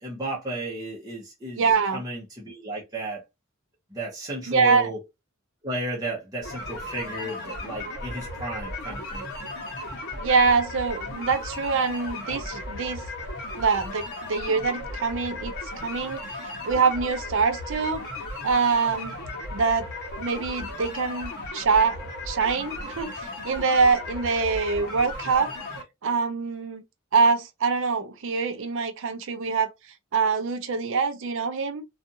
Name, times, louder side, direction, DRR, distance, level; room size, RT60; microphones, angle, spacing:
voice 1, 0.0-1.6 1.9-3.2 3.9-5.0 5.6-9.2, right 2 dB, 20° right, 0.8 m, -33 dB
voice 2, 1.6-2.0 4.5-4.9 10.2-13.0 13.6-18.0 18.4-19.1 19.5-19.9 20.2-22.0 22.3-25.5 26.0-26.8 27.1-29.7 30.1-31.8, right 5 dB, 65° right, 0.5 m, -24 dB
sound 1, 6.4-25.8, left 2 dB, 55° left, 1.0 m, -36 dB
2.5 x 2.4 x 2.7 m
head